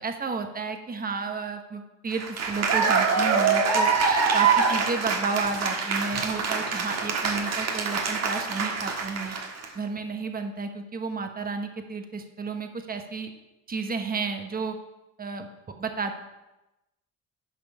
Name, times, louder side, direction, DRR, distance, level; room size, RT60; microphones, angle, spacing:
voice 1, 0.0-9.4 9.7-13.3 13.7-14.8 15.2-16.2, right 4 dB, 30° right, 6 dB, 1.1 m, -32 dB
Cheering / Applause, 2.1-9.7, right 5 dB, 60° right, 1.5 m, -25 dB
10.5 x 5.2 x 5.4 m, 0.99 s
cardioid pair, 90°, 30 cm